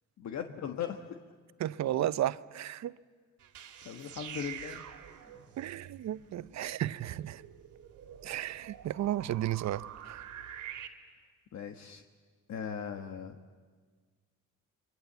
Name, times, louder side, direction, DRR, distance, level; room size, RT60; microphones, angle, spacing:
voice 1, 0.2-1.2 3.8-4.8 11.5-12.0 12.5-13.4, left 8 dB, 65° left, 1.4 m, -38 dB
voice 2, 1.6-3.0 5.6-7.4 8.2-10.2, right 12 dB, 65° right, 0.7 m, -33 dB
sound 1, 3.4-10.9, right 10 dB, 80° right, 2.3 m, -47 dB
27.5 x 23.0 x 8.1 m
cardioid pair, 90°, 30 cm